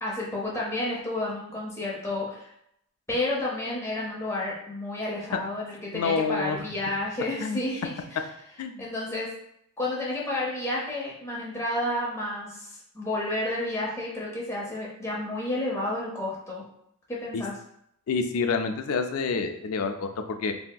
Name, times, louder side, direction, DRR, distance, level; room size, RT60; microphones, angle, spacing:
voice 1, 0.0-2.5 3.1-7.9 8.8-9.3 9.8-16.6 17.1-17.5, left 1 dB, 15° left, -4 dB, 0.7 m, -31 dB
voice 2, 5.9-6.6 7.4-7.6 8.6-8.9 17.3-17.4 18.1-20.5, left 4 dB, 75° left, 6 dB, 0.4 m, -28 dB
3.3 x 2.7 x 2.3 m, 0.73 s
head